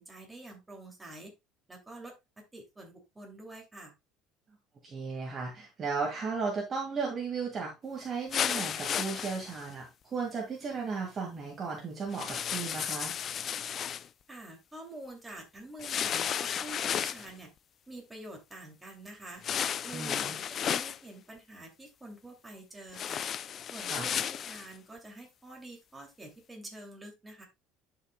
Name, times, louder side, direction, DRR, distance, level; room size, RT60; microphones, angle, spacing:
voice 1, 0.0-1.3 1.7-3.9 14.3-17.5 17.9-19.4 19.8-23.2 23.7-27.4, right 1 dB, 10° right, 2.5 m, -47 dB
voice 2, 4.8-13.1 19.9-20.4 23.9-24.1, right 4 dB, 25° right, 1.8 m, -35 dB
sound 1, 8.3-9.7 12.1-14.1 15.8-17.3 19.4-21.0 22.9-24.7, left 8 dB, 35° left, 0.3 m, -33 dB
11.0 x 5.7 x 2.2 m
cardioid pair, 155°, 0 cm